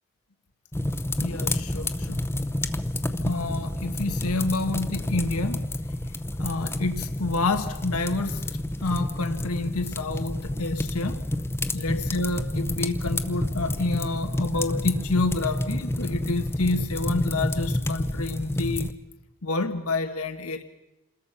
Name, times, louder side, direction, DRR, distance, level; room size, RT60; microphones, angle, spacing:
sound 1, 0.7-18.9, left 1 dB, 10° left, 0.7 m, -29 dB
voice 1, 1.2-2.2 3.2-5.6 6.4-8.4 8.8-11.2 11.7-18.9 19.4-20.6, left 3 dB, 90° left, 7 dB, 1.3 m, -28 dB
27.5 x 21.0 x 5.6 m, 1.0 s
head